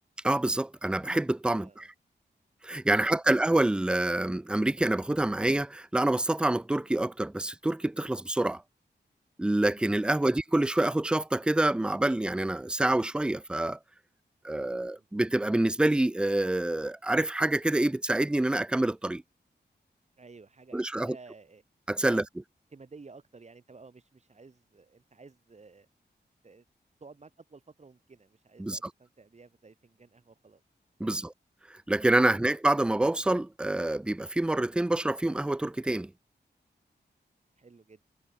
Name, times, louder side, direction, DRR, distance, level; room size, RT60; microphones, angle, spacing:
voice 1, 0.2-1.9 2.6-8.6 9.4-13.8 14.4-19.2 20.7-21.2 21.9-22.2 28.6-28.8 31.0-31.3 31.9-36.1, right 1 dB, 5° right, 0.3 m, -27 dB
voice 2, 1.6-1.9 2.9-3.3 10.2-10.3 14.7-15.1 20.2-21.6 22.0-22.2 22.7-25.9 26.4-26.7 27.0-30.6 31.0-31.3 37.6-38.0, right 4 dB, 40° right, 3.0 m, -53 dB
wide cardioid pair, 125°, 18 cm